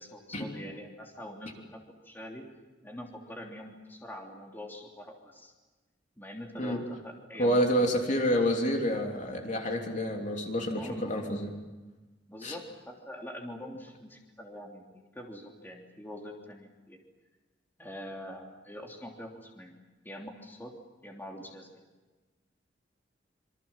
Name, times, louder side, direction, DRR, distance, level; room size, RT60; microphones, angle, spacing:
voice 1, 0.0-2.4 2.8-5.5 6.2-7.9 10.7-11.3 12.3-17.0 17.8-19.7 20.0-20.7 21.0-21.8, equal, 10° left, 0 dB, 3.2 m, -44 dB
voice 2, 7.4-11.5 12.4-12.6, equal, 40° left, 2 dB, 3.3 m, -28 dB
27.5 x 25.0 x 7.4 m, 1.2 s
head